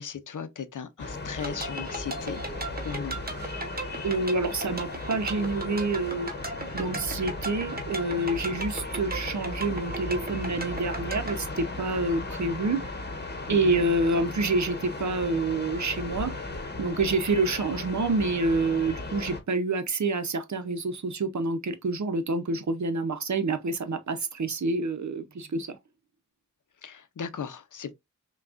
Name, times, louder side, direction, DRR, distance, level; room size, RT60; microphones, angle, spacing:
voice 1, 0.0-3.2 13.5-13.8 26.8-27.9, left 7 dB, 75° left, 0.6 m, -37 dB
sound 1, 1.0-19.4, left 2 dB, 35° left, 1.0 m, -36 dB
sound 2, 1.4-11.4, right 2 dB, 30° right, 1.0 m, -37 dB
voice 2, 4.0-6.3 6.7-12.8 13.5-16.3 16.8-25.8, right 3 dB, 65° right, 0.7 m, -27 dB
5.8 x 2.3 x 2.5 m
wide cardioid pair, 70°, 31 cm